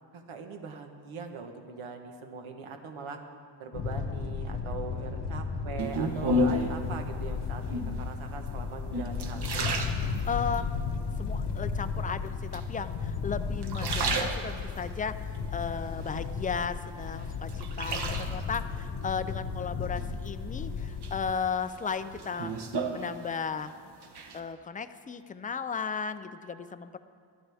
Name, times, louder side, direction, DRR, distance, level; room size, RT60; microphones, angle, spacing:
voice 1, 0.1-3.2 3.6-9.7, right 5 dB, 85° right, 4 dB, 1.2 m, -41 dB
sound 1, 3.7-21.3, left 5 dB, 60° left, 1.1 m, -34 dB
sound 2, 5.8-6.9 7.6-8.1 8.7-10.6 11.1-11.7 12.5-13.2 13.5-14.9 15.3-16.6 17.0-18.6 20.0-20.6 21.0-23.6 23.9-24.4, right 1 dB, 55° right, 1.1 m, -32 dB
voice 2, 6.0-6.6 10.3-10.7 11.2-22.5 22.9-23.7 24.3-27.0, left 6 dB, 20° left, 11 dB, 0.3 m, -35 dB
21.0 x 12.5 x 3.5 m, 2.2 s
wide cardioid pair, 150°, 47 cm